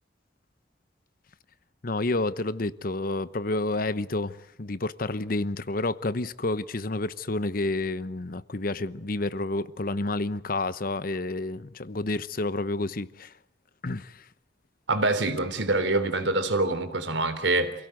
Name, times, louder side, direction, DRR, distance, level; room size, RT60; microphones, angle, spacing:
voice 1, 1.8-13.3 13.8-14.3, left 2 dB, 50° left, 0.9 m, -29 dB
voice 2, 14.9-17.7, right 2 dB, 90° right, 3.4 m, -25 dB
27.5 x 17.0 x 9.3 m
head